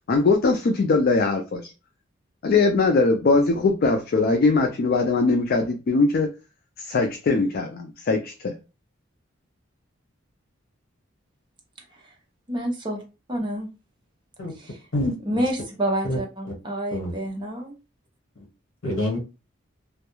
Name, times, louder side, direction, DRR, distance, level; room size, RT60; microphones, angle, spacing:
voice 1, 0.1-1.7 2.4-6.3 6.8-8.6, left 3 dB, 50° left, 5 dB, 0.3 m, -21 dB
voice 2, 12.5-13.0 13.3-13.7 14.6-14.7 15.3-17.7, right 1 dB, 25° right, 0 dB, 0.6 m, -28 dB
voice 3, 14.9-15.4 16.0-16.2 16.5-16.6 16.9-17.1 18.3-18.4 18.8-19.2, left 1 dB, 75° left, 0 dB, 1.0 m, -27 dB
2.2 x 2.1 x 2.9 m, 0.30 s
head